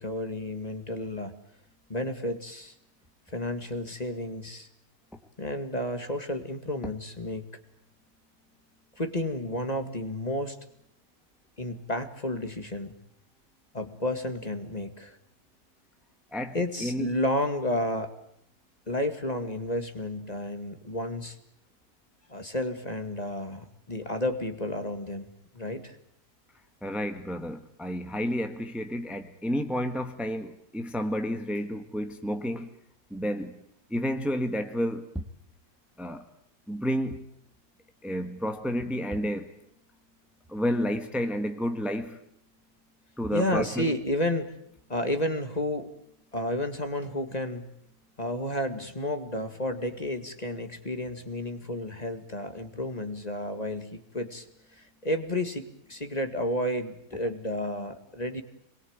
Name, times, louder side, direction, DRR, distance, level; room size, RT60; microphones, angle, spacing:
voice 1, 0.0-1.3 1.9-2.7 3.3-4.7 5.4-7.5 9.0-10.6 11.6-12.9 13.7-15.2 16.5-18.1 18.9-21.4 22.3-25.3 25.5-26.0 43.3-44.5 44.9-45.9 46.3-47.7 48.2-54.5 54.7-58.4, left 1 dB, 25° left, 2.2 m, -31 dB
voice 2, 16.3-17.1 26.8-32.7 33.1-33.6 33.9-35.3 36.0-36.2 36.7-37.3 38.0-39.5 40.5-42.2 43.2-43.9, equal, ahead, 1.5 m, -31 dB
28.0 x 22.0 x 8.9 m
omnidirectional pair, 1.6 m